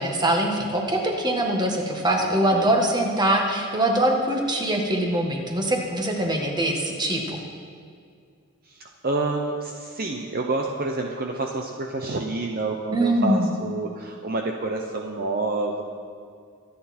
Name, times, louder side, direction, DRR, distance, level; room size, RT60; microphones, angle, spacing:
voice 1, 0.0-7.4 12.9-13.5, right 1 dB, 20° right, 1 dB, 1.7 m, -23 dB
voice 2, 2.2-2.7 8.7-15.8, right 3 dB, 45° right, 2 dB, 0.9 m, -28 dB
24.5 x 9.5 x 4.4 m, 2.2 s
head